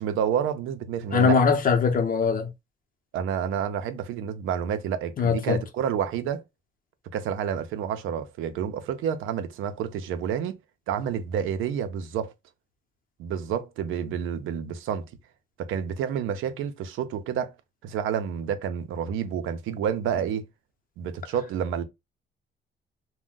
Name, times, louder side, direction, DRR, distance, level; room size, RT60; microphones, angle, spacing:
voice 1, 0.0-1.4 3.1-6.4 7.1-10.6 10.9-12.3 13.2-15.0 15.6-17.5 17.8-20.4 21.0-21.8, right 8 dB, 85° right, 0.5 m, -29 dB
voice 2, 1.1-2.5 5.2-5.6, left 5 dB, 45° left, 0.7 m, -21 dB
2.5 x 2.1 x 3.6 m
cardioid pair, 90°, 20 cm